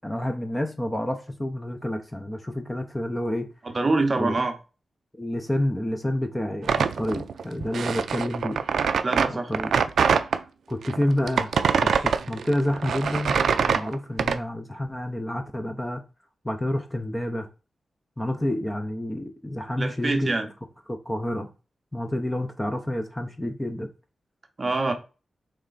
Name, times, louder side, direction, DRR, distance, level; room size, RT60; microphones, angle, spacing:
voice 1, 0.0-3.5 4.2-4.4 5.2-8.6 9.5-9.7 10.7-11.5 11.8-16.0 16.4-17.5 18.2-20.3 20.9-21.5 21.9-23.9, left 1 dB, 10° left, 0.5 m, -29 dB
voice 2, 3.7-4.5 9.0-9.5 19.8-20.5 24.6-24.9, right 3 dB, 30° right, 0.6 m, -24 dB
sound 1, 6.6-10.4 10.8-14.4, right 6 dB, 80° right, 0.3 m, -24 dB
4.3 x 3.2 x 3.8 m
wide cardioid pair, 160°, 0 cm